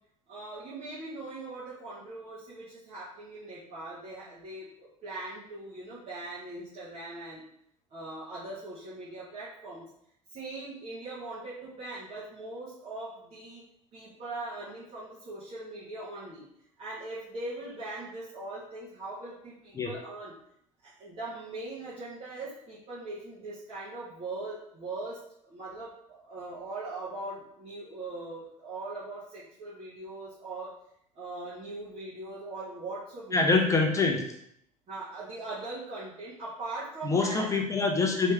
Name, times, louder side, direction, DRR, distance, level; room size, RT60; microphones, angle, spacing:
voice 1, 0.3-7.4 7.9-9.9 10.3-13.6 13.9-16.4 16.8-20.3 20.8-30.7 31.1-33.8 34.1-34.2 34.9-37.5, right 2 dB, 35° right, -10 dB, 1.2 m, -40 dB
voice 2, 33.3-34.2 37.0-38.3, left 3 dB, 15° left, 2 dB, 0.8 m, -25 dB
3.2 x 3.1 x 3.3 m, 0.73 s
figure-of-eight pair, 65°, 18 cm